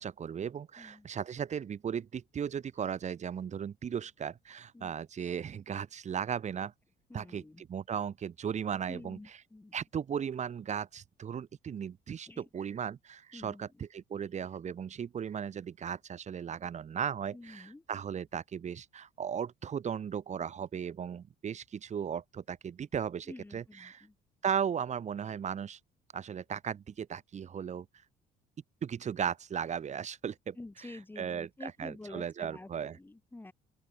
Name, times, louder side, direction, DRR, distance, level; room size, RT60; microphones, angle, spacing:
voice 1, 0.0-6.7 7.1-9.4 9.7-24.1 24.4-25.8 26.1-27.9 28.8-30.6 30.9-33.0, right 8 dB, 45° right, 4.0 m, -36 dB
voice 2, 7.1-7.6 8.9-9.8 12.3-12.5 13.3-13.7 17.3-17.8 23.3-24.1 30.6-33.5, left 2 dB, 10° left, 2.5 m, -48 dB
open air
cardioid pair, 110°, 17 cm